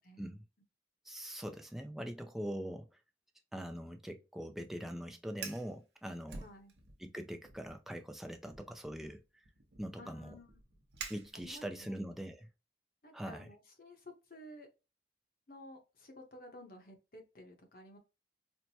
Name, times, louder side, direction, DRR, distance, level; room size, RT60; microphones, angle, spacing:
voice 1, 1.1-2.9 3.5-6.5 7.0-9.2 9.8-10.4 11.1-12.5 13.1-13.5, equal, ahead, 0.3 m, -42 dB
Fire, 5.3-5.7 6.3-7.1 7.4-7.8 8.5-11.8, right 5 dB, 65° right, 0.7 m, -49 dB
voice 2, 6.4-6.7 10.0-10.5 11.3-12.0 13.0-14.7 15.5-18.0, left 1 dB, 50° left, 0.8 m, -53 dB
4.4 x 2.1 x 2.7 m
head